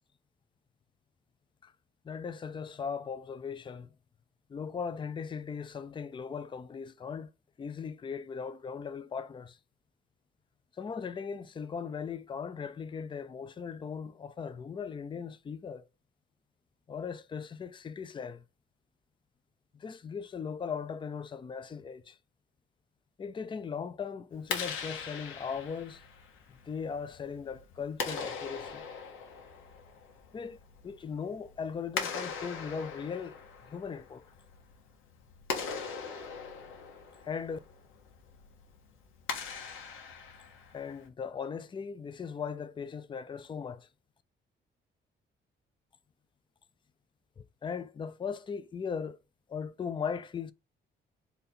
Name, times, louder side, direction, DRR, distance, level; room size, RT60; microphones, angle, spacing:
voice 1, 2.1-3.9 4.5-7.3 7.6-9.6 10.8-15.8 16.9-18.4 19.7-22.2 23.2-26.0 26.6-28.8 30.3-30.6 30.8-33.4 33.7-34.3 37.2-37.6 40.7-43.9 47.4-49.2 49.5-50.5, left 6 dB, 25° left, 0.4 m, -38 dB
Clapping, 24.3-41.1, left 6 dB, 90° left, 1.0 m, -41 dB
4.0 x 2.8 x 4.1 m
cardioid pair, 90°, 20 cm